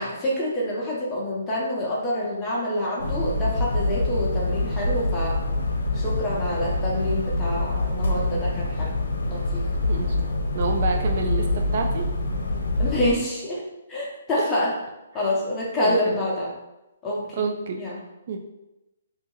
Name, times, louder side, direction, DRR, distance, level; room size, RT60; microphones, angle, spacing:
voice 1, 0.0-5.4 5.9-8.9 9.3-9.6 12.8-13.6 13.9-14.7 15.1-16.5 17.0-17.5 17.8-18.0, left 1 dB, 10° left, -5 dB, 0.8 m, -27 dB
sound 1, 3.0-13.1, left 2 dB, 75° left, 0.7 m, -25 dB
voice 2, 9.8-10.2 10.5-12.0 15.8-16.2 17.4-17.9 18.3-18.4, right 4 dB, 45° right, 3 dB, 0.3 m, -28 dB
2.7 x 2.5 x 3.9 m, 0.97 s
hypercardioid pair, 165°, 0 cm